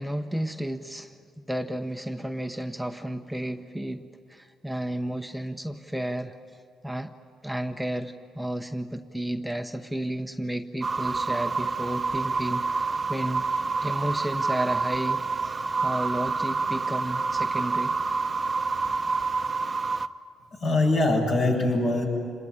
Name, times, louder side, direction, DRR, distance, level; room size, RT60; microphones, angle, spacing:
voice 1, 0.0-7.1 7.4-13.5 13.8-17.9, right 1 dB, ahead, 6 dB, 0.9 m, -32 dB
sound 1, 10.8-20.1, right 4 dB, 30° right, 0.8 m, -28 dB
voice 2, 20.5-22.0, left 2 dB, 55° left, 1 dB, 7.2 m, -23 dB
27.0 x 21.0 x 9.7 m, 2.3 s
cardioid pair, 90°, 0 cm